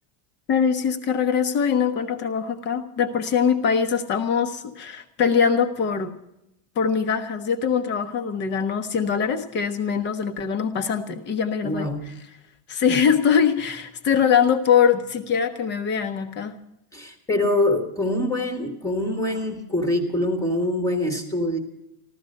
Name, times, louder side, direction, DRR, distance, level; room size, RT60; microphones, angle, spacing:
voice 1, 0.5-6.1 6.8-11.9 12.7-16.6, left 7 dB, 20° left, 9 dB, 0.9 m, -22 dB
voice 2, 11.6-12.1 12.9-13.0 16.9-21.6, left 1 dB, 5° left, 4 dB, 1.3 m, -24 dB
15.0 x 13.0 x 6.4 m, 0.83 s
supercardioid pair, 175°, 49 cm